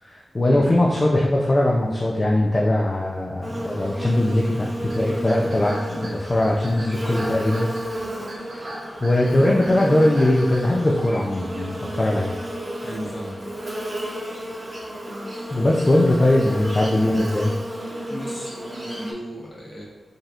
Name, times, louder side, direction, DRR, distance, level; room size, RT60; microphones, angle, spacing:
voice 1, 0.0-7.7 8.5-12.3 15.5-17.5, left 1 dB, 35° left, -3 dB, 0.5 m, -20 dB
Buzz, 3.4-19.1, equal, 25° right, 1.0 m, -32 dB
sound 1, 4.7-11.3 11.9-12.3 12.7-13.0 13.4-13.6 14.2-17.4, right 1 dB, 80° right, 1.2 m, -41 dB
voice 2, 12.8-13.4 17.2-17.4 18.1-19.8, equal, 50° left, -4 dB, 1.3 m, -35 dB
5.1 x 2.9 x 2.5 m, 1.3 s
cardioid pair, 75°, 0 cm